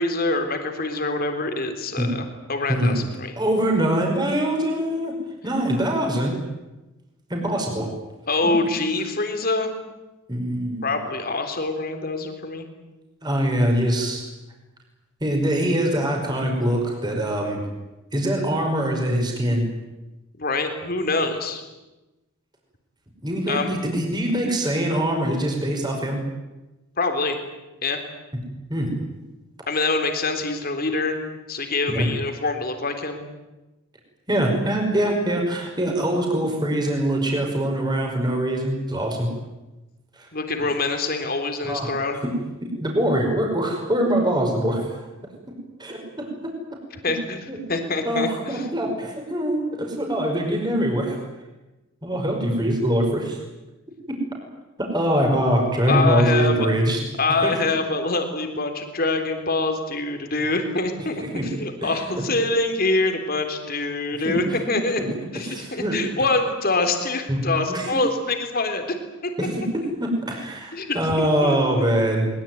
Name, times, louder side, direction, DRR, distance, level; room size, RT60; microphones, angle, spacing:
voice 1, 0.0-3.3 8.3-9.7 10.8-12.7 20.4-21.6 23.5-23.7 27.0-27.4 27.8-28.0 29.7-31.2 31.5-33.2 40.3-42.2 47.0-47.4 47.7-48.6 55.8-56.7 57.2-65.0 65.3-69.0 69.2-69.3 70.7-71.8, left 3 dB, 45° left, 6 dB, 3.7 m, -25 dB
voice 2, 3.4-5.2 5.4-6.4 7.3-7.9 8.4-8.5 10.3-10.9 13.2-14.2 15.2-17.6 18.1-19.7 23.2-26.2 28.7-28.9 31.9-32.1 34.3-39.3 40.2-40.3 41.6-41.9 42.2-42.3 42.6-44.9 45.5-46.6 47.5-51.2 52.0-53.4 54.1-54.2 54.8-57.0 57.4-57.6 61.2-61.5 61.8-62.2 64.2-64.4 64.7-66.0 67.3-67.4 67.7-68.0 69.4-72.3, right 1 dB, 20° right, 1 dB, 5.5 m, -23 dB
22.5 x 22.0 x 9.5 m, 1.1 s
head